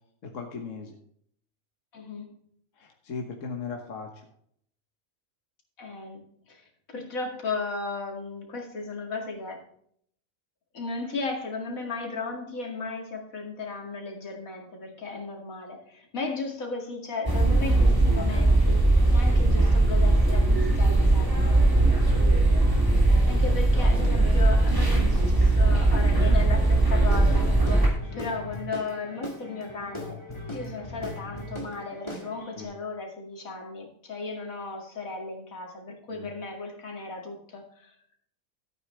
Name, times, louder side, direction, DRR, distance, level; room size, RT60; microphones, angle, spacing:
voice 1, 0.2-0.9 2.8-4.2 22.0-22.3 28.0-28.3 32.4-32.7 36.1-36.3, left 5 dB, 65° left, 2 dB, 1.6 m, -38 dB
voice 2, 1.9-2.3 5.8-6.2 6.5-9.6 10.7-21.3 23.3-27.6 28.1-30.2 30.5-37.9, left 3 dB, 85° left, 2 dB, 2.7 m, -35 dB
sound 1, 17.3-27.9, right 2 dB, 15° right, 2.7 m, -20 dB
Guitar / Drum, 27.1-32.6, left 1 dB, 20° left, 2.1 m, -39 dB
13.5 x 8.8 x 3.3 m, 0.66 s
omnidirectional pair, 1.4 m